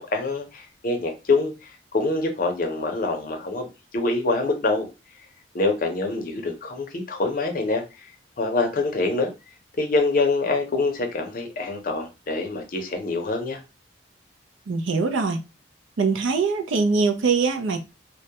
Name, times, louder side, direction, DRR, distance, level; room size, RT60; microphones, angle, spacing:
voice 1, 0.0-4.9 5.5-7.8 8.4-9.3 9.8-13.6, left 3 dB, 45° left, 0.5 m, -25 dB
voice 2, 14.7-15.4 16.0-17.8, right 4 dB, 85° right, 0.4 m, -22 dB
2.2 x 2.0 x 2.8 m
head